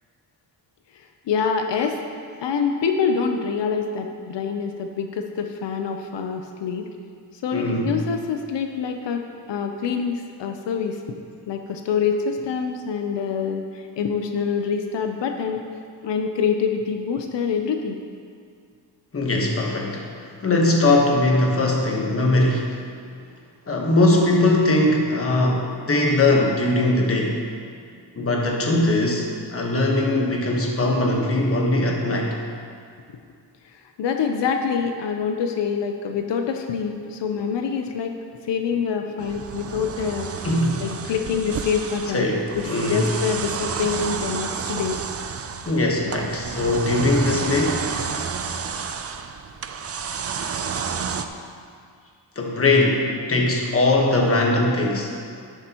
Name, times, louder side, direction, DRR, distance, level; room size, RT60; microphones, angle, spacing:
voice 1, 0.9-2.0 2.4-6.9 7.3-11.0 11.5-15.6 16.0-18.0 33.6-38.2 38.4-40.5 40.8-42.3 42.5-45.0, left 6 dB, 85° left, 5 dB, 0.7 m, -26 dB
voice 2, 7.5-8.0 19.1-22.8 23.7-27.4 28.1-32.4 40.4-40.8 42.1-43.1 45.7-47.9 52.3-55.2, left 2 dB, 35° left, 0 dB, 1.3 m, -21 dB
sound 1, 39.2-51.3, right 6 dB, 35° right, 0.4 m, -30 dB
11.0 x 9.7 x 3.0 m, 2.3 s
wide cardioid pair, 140°, 41 cm